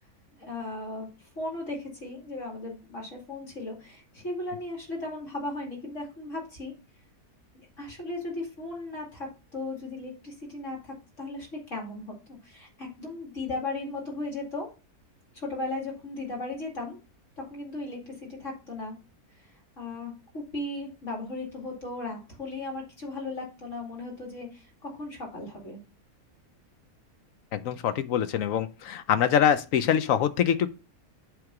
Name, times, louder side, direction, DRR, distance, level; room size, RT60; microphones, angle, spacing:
voice 1, 0.4-1.1 1.4-6.7 7.5-14.7 15.3-17.0 17.4-18.9 19.8-25.8, left 2 dB, 55° left, 2.8 m, -36 dB
voice 2, 27.5-30.7, left 9 dB, 70° left, 1.0 m, -24 dB
7.9 x 3.7 x 6.0 m
omnidirectional pair, 1.6 m